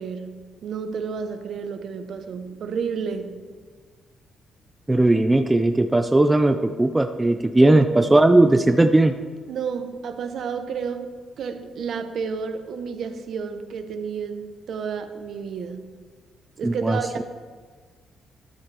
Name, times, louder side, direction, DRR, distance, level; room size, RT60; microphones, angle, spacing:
voice 1, 0.0-3.5 7.6-7.8 9.5-15.9 16.6-17.2, right 6 dB, 60° right, 7 dB, 1.0 m, -31 dB
voice 2, 4.9-9.1 16.6-17.2, right 2 dB, 10° right, 7 dB, 0.4 m, -18 dB
13.0 x 12.0 x 3.4 m, 1.5 s
cardioid pair, 150°, 0 cm